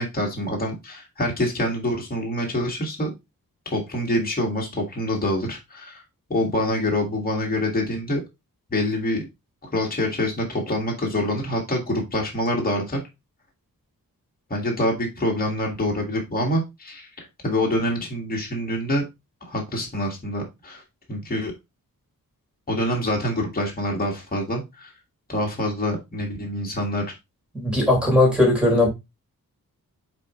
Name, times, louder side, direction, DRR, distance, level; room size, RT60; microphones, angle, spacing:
voice 1, 0.0-3.1 3.7-6.0 6.3-8.2 8.7-9.3 9.6-13.0 14.5-17.1 17.4-19.0 19.4-20.8 21.1-21.5 22.7-24.9 25.3-27.0, left 1 dB, 25° left, 1.9 m, -26 dB
voice 2, 27.5-28.9, left 2 dB, 5° right, 3.5 m, -18 dB
7.3 x 4.3 x 3.1 m
wide cardioid pair, 170°, 35 cm